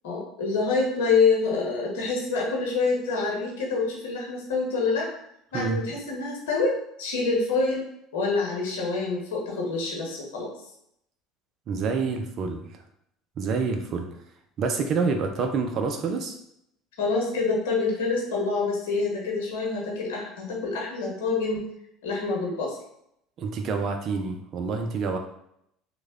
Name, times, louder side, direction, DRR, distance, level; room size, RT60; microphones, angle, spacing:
voice 1, 0.0-5.1 5.5-7.8 8.1-10.5 17.0-21.6 22.0-22.8, left 4 dB, 75° left, -2 dB, 0.9 m, -26 dB
voice 2, 11.7-12.7 13.4-14.1 14.6-16.4 23.4-25.2, right 4 dB, 50° right, 5 dB, 0.6 m, -27 dB
3.2 x 2.3 x 3.6 m, 0.75 s
hypercardioid pair, 70°, 0 cm